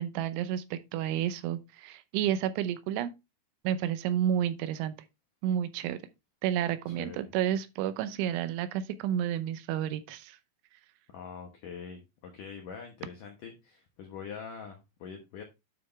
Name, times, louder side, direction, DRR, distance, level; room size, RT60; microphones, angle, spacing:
voice 1, 0.0-3.1 3.6-4.9 5.4-6.0 6.4-10.4, right 10 dB, 85° right, 3.2 m, -30 dB
voice 2, 6.9-7.3 11.1-15.4, left 6 dB, 75° left, 1.9 m, -44 dB
9.4 x 5.4 x 3.3 m
omnidirectional pair, 5.5 m